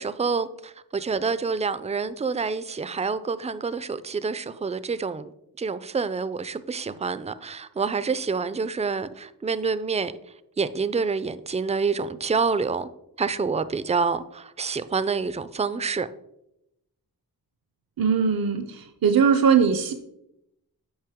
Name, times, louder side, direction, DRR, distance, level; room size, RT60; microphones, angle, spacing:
voice 1, 0.0-5.3 5.6-10.1 10.6-12.9 13.2-16.1, right 5 dB, 20° right, 0.3 m, -27 dB
voice 2, 18.0-19.9, right 6 dB, 65° right, 0.6 m, -20 dB
8.8 x 5.4 x 3.5 m
wide cardioid pair, 75°, 38 cm